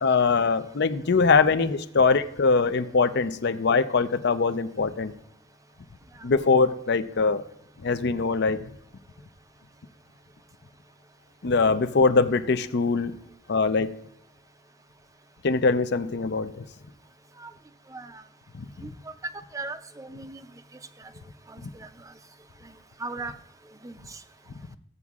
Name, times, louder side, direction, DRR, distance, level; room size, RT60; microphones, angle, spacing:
voice 1, 0.0-5.1 6.2-7.4 7.8-8.6 11.4-13.1 13.5-13.9 15.4-16.6 18.5-18.6, left 4 dB, 60° left, 10 dB, 0.6 m, -22 dB
voice 2, 17.9-18.2 18.8-18.9 19.5-20.5 21.0-21.1 21.5-22.1 22.6-23.3 23.7-24.2, right 3 dB, 15° right, 10 dB, 0.5 m, -39 dB
15.5 x 8.1 x 2.4 m, 0.80 s
head